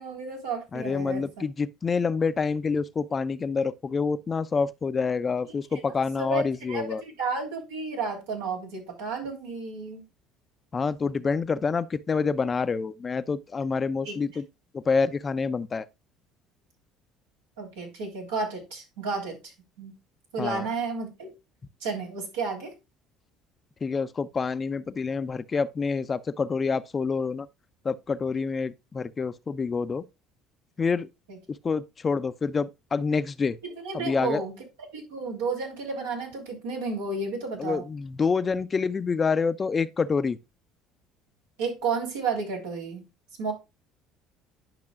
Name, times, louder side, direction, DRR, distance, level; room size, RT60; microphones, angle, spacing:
voice 1, 0.0-1.2 5.7-5.8 6.2-10.0 14.0-14.2 17.6-19.5 19.8-19.9 20.3-21.3 21.8-22.7 31.3-31.4 33.6-34.6 34.9-37.8 41.6-43.0 43.4-43.5, right 4 dB, 85° right, 3.2 m, -32 dB
voice 2, 0.7-7.0 10.7-14.5 14.7-15.9 20.4-20.7 23.8-27.5 27.8-30.0 30.8-31.1 31.5-33.6 33.9-34.4 37.6-40.4, left 5 dB, 30° left, 0.6 m, -27 dB
10.5 x 5.7 x 2.3 m
hypercardioid pair, 70°, 0 cm